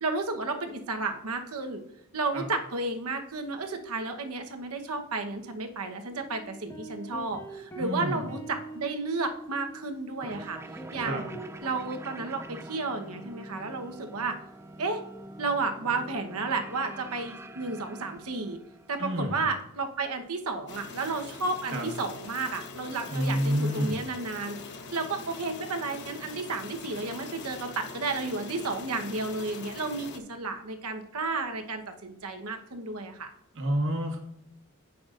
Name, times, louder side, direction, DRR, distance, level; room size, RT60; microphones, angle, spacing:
voice 1, 0.0-1.8 2.1-10.6 10.9-11.3 11.6-14.4 14.8-15.0 15.4-18.6 18.9-24.6 24.9-33.3, right 3 dB, 80° right, 5 dB, 1.1 m, -32 dB
sound 1, 6.1-11.6, right 2 dB, 10° left, 1.3 m, -44 dB
voice 2, 7.8-8.4 11.0-11.3 19.0-19.4 21.7-21.9 23.1-24.0 33.5-34.2, equal, 60° right, 2 dB, 1.6 m, -29 dB
sound 2, 10.2-19.2, right 2 dB, 10° right, 0.4 m, -45 dB
sound 3, 20.7-30.2, left 4 dB, 55° left, 1.0 m, -43 dB
16.0 x 5.9 x 2.5 m, 0.79 s
head